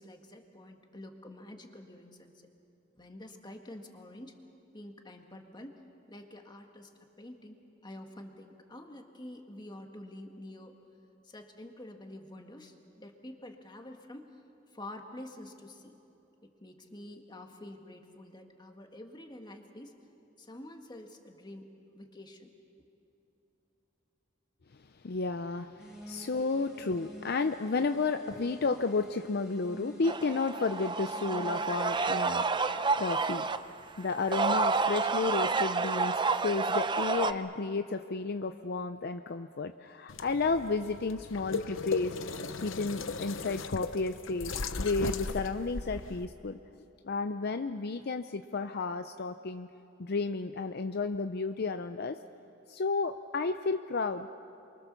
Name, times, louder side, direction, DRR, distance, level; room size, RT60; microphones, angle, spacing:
voice 1, 0.0-2.5 3.0-4.4 4.7-5.8 6.1-7.6 7.8-10.8 11.2-14.4 14.7-16.0 16.4-19.9 20.4-22.5, left 1 dB, 25° left, 4 dB, 1.9 m, -48 dB
voice 2, 25.0-33.5 34.0-42.2 42.6-44.5 44.8-46.6 47.0-49.7 50.0-52.2 52.7-54.3, left 4 dB, 55° left, 9 dB, 0.6 m, -32 dB
sound 1, 25.8-31.9, equal, 5° right, 4.2 m, -49 dB
sound 2, 30.0-33.6 34.1-37.3, right 4 dB, 25° right, 0.6 m, -29 dB
sound 3, 40.1-46.3, left 4 dB, 80° left, 0.9 m, -37 dB
28.5 x 23.5 x 7.0 m, 2.9 s
head